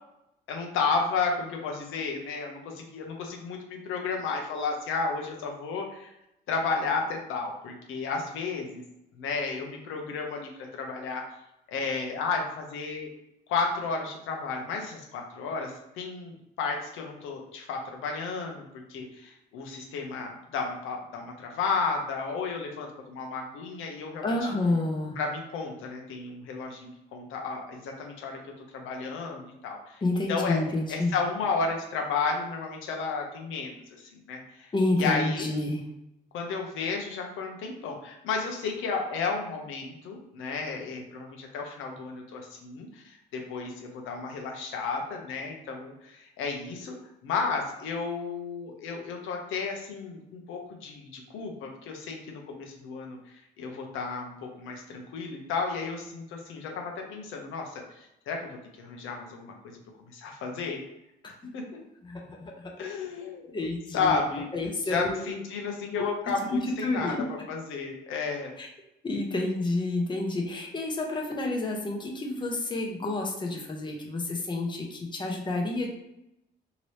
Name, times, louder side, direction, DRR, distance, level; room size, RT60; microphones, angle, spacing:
voice 1, 0.5-6.1 6.5-8.8 9.2-11.2 11.7-13.1 13.5-24.5 25.2-28.4 28.7-30.0 30.3-30.6 30.9-34.7 35.0-35.5 36.3-47.0 47.2-60.8 61.2-61.6 62.8-63.5 63.9-64.5 64.8-68.5, left 4 dB, 90° left, 1 dB, 0.7 m, -33 dB
voice 2, 24.2-25.2 30.0-31.2 34.7-35.8 61.4-61.5 62.0-62.7 63.5-64.2 64.5-65.1 66.0-66.1 66.8-67.2 68.6-68.7 69.0-75.9, left 2 dB, 25° left, 0 dB, 0.7 m, -29 dB
2.9 x 2.7 x 3.2 m, 0.85 s
cardioid pair, 90°, 20 cm